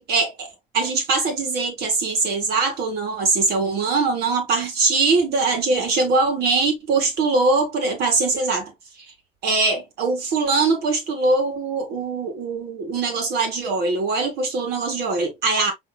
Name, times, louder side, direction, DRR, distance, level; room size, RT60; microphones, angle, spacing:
voice 1, 0.0-8.7 9.4-15.7, right 3 dB, 70° right, 2.5 m, -22 dB
5.7 x 3.6 x 2.3 m
cardioid pair, 110°, 17 cm